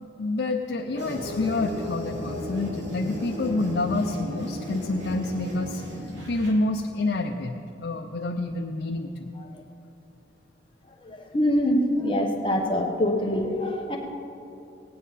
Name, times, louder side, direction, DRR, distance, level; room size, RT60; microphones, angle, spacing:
voice 1, 0.2-5.8 6.3-7.6 7.8-9.3, left 2 dB, 75° left, 1 dB, 0.6 m, -28 dB
sound 1, 0.9-6.5, left 1 dB, 85° right, 2.5 m, -35 dB
voice 2, 11.0-14.0, left 1 dB, 30° left, 1 dB, 1.0 m, -24 dB
17.5 x 9.5 x 4.1 m, 2.7 s
head